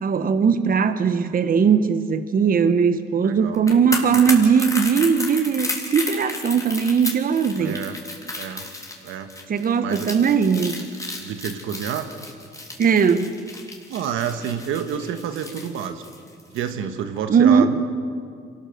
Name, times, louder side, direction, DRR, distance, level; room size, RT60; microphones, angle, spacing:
voice 1, 0.0-7.8 9.5-10.8 12.8-13.3 17.3-17.7, right 6 dB, 45° right, 11 dB, 1.1 m, -19 dB
voice 2, 3.2-3.7 7.6-8.0 8.3-8.6 9.0-9.3 9.8-10.1 11.2-12.1 13.9-16.0 16.5-17.8, right 8 dB, 85° right, 8 dB, 1.5 m, -29 dB
sound 1, 3.5-16.7 17.0-17.2, left 2 dB, 15° left, 3.6 m, -33 dB
25.0 x 18.5 x 8.0 m, 2.2 s
cardioid pair, 90°, 20 cm